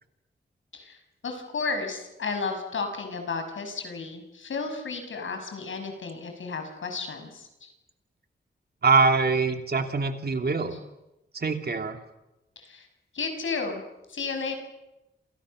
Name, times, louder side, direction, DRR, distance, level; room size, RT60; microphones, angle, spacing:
voice 1, 1.2-7.7 12.6-12.9 13.1-13.8 14.1-14.6, left 4 dB, 90° left, 6 dB, 6.2 m, -33 dB
voice 2, 8.8-10.8 11.3-12.0, right 4 dB, 55° right, 5 dB, 3.0 m, -23 dB
28.5 x 28.5 x 6.6 m, 0.94 s
wide cardioid pair, 105°, 20 cm